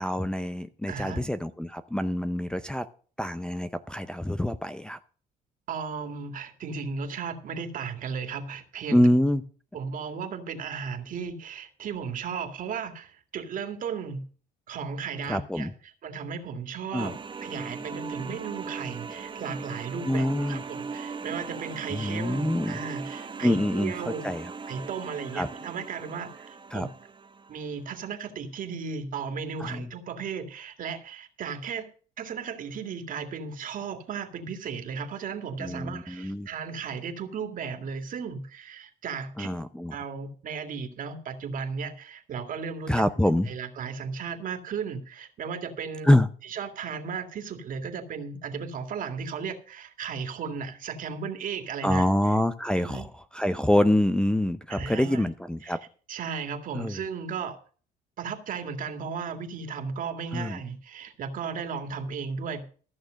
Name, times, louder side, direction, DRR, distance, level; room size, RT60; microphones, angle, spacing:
voice 1, 0.0-2.9 3.2-5.0 8.9-9.4 15.3-15.7 16.9-17.1 20.1-20.6 21.9-22.8 23.4-24.5 25.3-25.5 26.7-26.9 29.6-29.9 35.6-36.5 39.4-39.9 42.9-43.5 46.0-46.3 51.8-55.8 56.7-57.0 60.3-60.6, left 1 dB, 5° left, 8 dB, 0.6 m, -25 dB
voice 2, 0.9-1.2 5.7-9.1 9.7-14.2 14.7-17.2 17.4-24.3 24.7-26.9 27.5-31.9 32.2-39.5 39.9-43.0 43.5-46.2 46.4-52.1 52.7-53.1 54.7-55.3 55.6-55.8 56.1-57.6 58.2-62.7, right 6 dB, 55° right, 6 dB, 2.2 m, -35 dB
sound 1, 17.0-27.7, right 5 dB, 30° right, 1.0 m, -39 dB
14.5 x 6.5 x 6.4 m, 0.41 s
cardioid pair, 110°, 17 cm